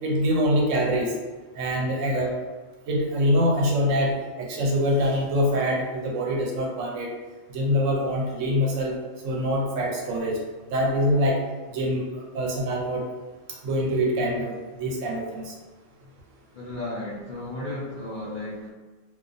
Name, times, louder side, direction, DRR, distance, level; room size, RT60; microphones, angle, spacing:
voice 1, 0.0-1.1 1.6-2.3 2.9-7.1 7.5-9.0 9.2-10.4 10.7-11.4 11.7-13.0 13.5-15.5, equal, 80° right, -1 dB, 0.9 m, -24 dB
voice 2, 16.5-18.7, left 1 dB, 65° left, -8 dB, 0.5 m, -34 dB
2.3 x 2.1 x 2.5 m, 1.3 s
omnidirectional pair, 1.3 m